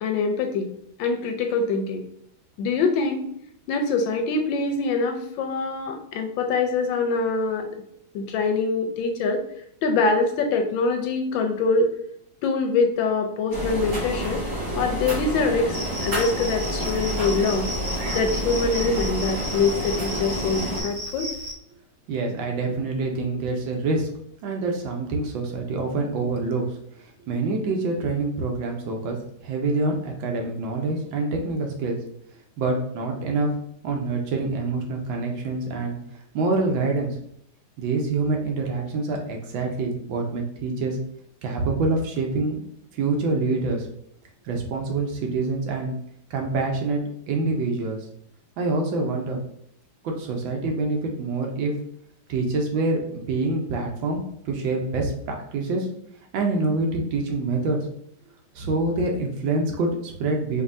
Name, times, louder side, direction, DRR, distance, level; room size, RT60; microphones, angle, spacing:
voice 1, 0.0-0.7 1.0-2.0 2.6-3.3 3.7-7.8 8.1-9.4 9.8-11.9 12.4-14.4 14.7-15.8 16.0-17.7 18.1-21.3, left 4 dB, 75° left, 4 dB, 1.2 m, -24 dB
sound 1, 13.5-20.8, right 1 dB, 55° right, 2.2 m, -29 dB
Cricket, 15.7-21.5, equal, 90° right, 0.5 m, -34 dB
voice 2, 22.1-24.1 24.4-26.7 27.3-29.2 29.4-32.0 32.6-33.5 33.8-36.0 36.3-37.1 37.8-41.0 41.4-42.6 42.9-43.9 44.5-45.9 46.3-48.0 48.6-49.4 50.0-51.7 52.3-55.9 56.3-57.8 58.5-60.6, right 3 dB, 70° right, 1 dB, 1.4 m, -26 dB
5.2 x 2.7 x 2.6 m, 0.71 s
omnidirectional pair, 2.2 m